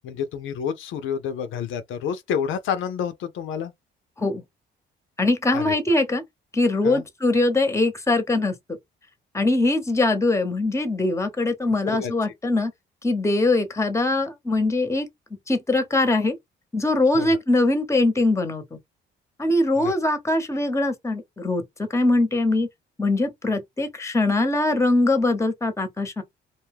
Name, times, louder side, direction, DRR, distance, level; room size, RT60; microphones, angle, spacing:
voice 1, 0.0-3.7 5.5-5.8 6.8-7.0 11.8-12.1 17.1-17.4 19.8-19.9, left 7 dB, 80° left, 0.5 m, -29 dB
voice 2, 5.2-6.2 6.5-8.5 9.3-12.7 13.0-15.1 15.5-16.4 16.7-18.8 19.4-22.7 23.0-26.2, left 2 dB, 15° left, 0.8 m, -22 dB
2.6 x 2.2 x 3.3 m
cardioid pair, 90°, 20 cm